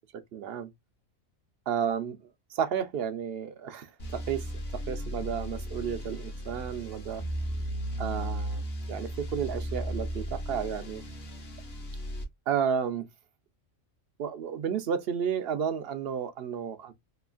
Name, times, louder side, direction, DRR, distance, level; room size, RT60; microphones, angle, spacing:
voice 1, 0.3-0.7 1.7-2.2 2.5-4.4 4.9-7.2 8.0-8.6 8.9-11.0 12.5-13.1 14.2-16.9, right 8 dB, 60° right, 0.7 m, -32 dB
sound 1, 4.0-12.2, equal, 50° left, 1.2 m, -35 dB
3.0 x 2.4 x 2.4 m
omnidirectional pair, 1.4 m